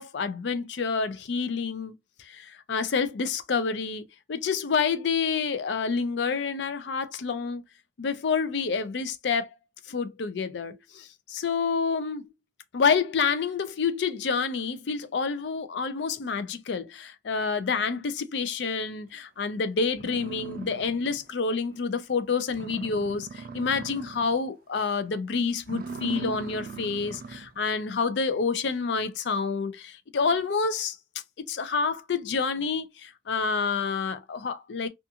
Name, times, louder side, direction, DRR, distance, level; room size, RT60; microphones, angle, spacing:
voice 1, 0.0-1.9 2.2-7.6 8.0-9.5 9.9-12.3 12.7-31.0 31.5-34.9, left 5 dB, 65° left, 0.4 m, -28 dB
sound 1, 19.5-19.6 19.9-21.3 21.7-21.8 22.2-22.3 22.5-24.4 24.8-25.1 25.6-27.6, right 4 dB, 50° right, 0.3 m, -39 dB
2.4 x 2.4 x 2.7 m
head